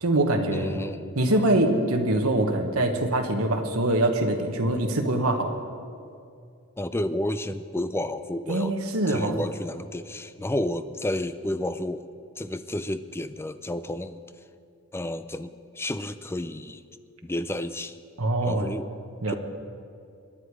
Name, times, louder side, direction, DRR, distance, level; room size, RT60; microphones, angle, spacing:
voice 1, 0.0-0.8 1.1-5.6 8.5-9.4 18.2-18.7 19.2-19.4, right 1 dB, 70° right, 3 dB, 1.3 m, -24 dB
voice 2, 0.5-1.0 6.8-8.7 9.1-12.0 12.4-14.2 14.9-16.8 17.2-17.9 18.4-18.9 19.3-19.4, left 1 dB, 10° left, 12 dB, 0.4 m, -31 dB
23.0 x 10.0 x 4.8 m, 2.4 s
head